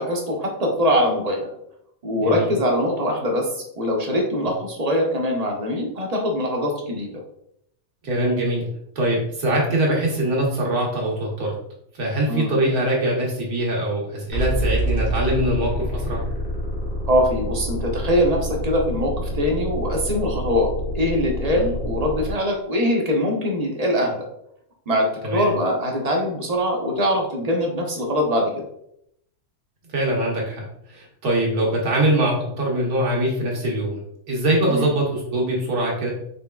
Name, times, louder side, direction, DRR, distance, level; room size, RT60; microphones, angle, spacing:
voice 1, 0.0-1.5 2.0-7.2 12.3-12.5 17.1-24.3 24.9-28.7 34.7-34.9, equal, 35° right, 0 dB, 0.8 m, -22 dB
voice 2, 2.2-2.5 8.0-8.7 9.0-11.5 12.0-16.2 21.5-21.7 25.2-25.5 29.9-30.6 30.9-34.0 34.3-36.1, right 1 dB, 75° right, -2 dB, 1.7 m, -23 dB
sound 1, 14.3-22.3, equal, 60° left, 2.1 m, -27 dB
5.4 x 3.4 x 2.3 m, 0.74 s
omnidirectional pair, 1.6 m